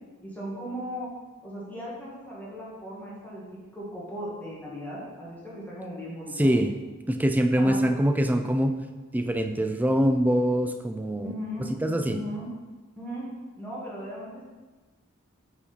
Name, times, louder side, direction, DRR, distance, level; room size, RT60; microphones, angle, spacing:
voice 1, 0.2-1.1 1.4-6.5 7.6-7.9 11.2-11.7 12.1-12.5 13.0-13.3 13.6-14.4, equal, 10° left, -7 dB, 1.4 m, -37 dB
voice 2, 6.4-6.7 7.1-8.8 9.1-11.3 11.8-12.2, equal, 10° right, 6 dB, 0.3 m, -24 dB
4.7 x 4.4 x 5.2 m, 1.3 s
head